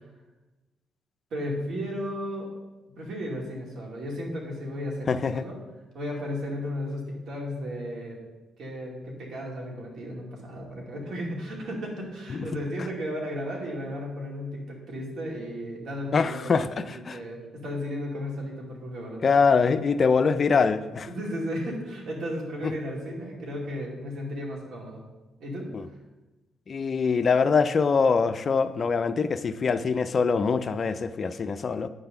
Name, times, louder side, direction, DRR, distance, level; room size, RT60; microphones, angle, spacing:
voice 1, 1.3-2.5 3.0-5.6 5.9-8.2 8.6-19.4 21.1-25.0 25.4-25.7, equal, 65° right, -1 dB, 2.5 m, -34 dB
voice 2, 5.1-5.4 12.3-12.5 16.1-17.2 19.2-21.1 22.6-22.7 25.7-25.9 26.7-31.9, left 5 dB, 45° left, 12 dB, 0.4 m, -24 dB
9.3 x 4.0 x 6.7 m, 1.1 s
cardioid pair, 90°, 0 cm